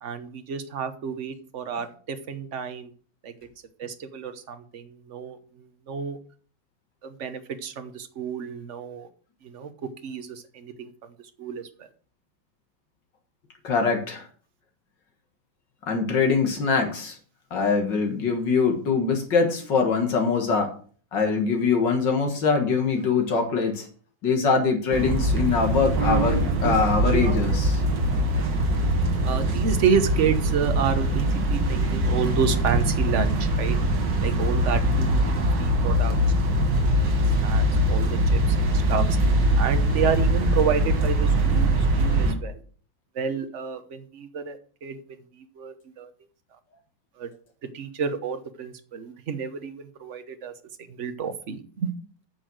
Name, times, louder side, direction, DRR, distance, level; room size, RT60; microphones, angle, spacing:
voice 1, 0.0-2.9 3.2-3.3 3.8-6.2 7.0-9.1 9.4-9.7 10.0-10.9 11.4-11.9 29.2-33.8 34.2-36.2 36.8-39.0 39.6-41.7 42.0-42.6 43.1-45.0 45.6-46.1 47.2-47.3 47.7-50.5 50.9-51.9, right 6 dB, 45° right, 9 dB, 1.1 m, -30 dB
voice 2, 13.6-14.3 15.9-17.2 17.5-20.7 21.1-23.9 24.2-27.8, left 5 dB, 65° left, 3 dB, 2.3 m, -23 dB
sound 1, 24.9-42.3, right 1 dB, 65° right, 2.2 m, -22 dB
9.1 x 6.2 x 6.3 m, 0.43 s
omnidirectional pair, 2.2 m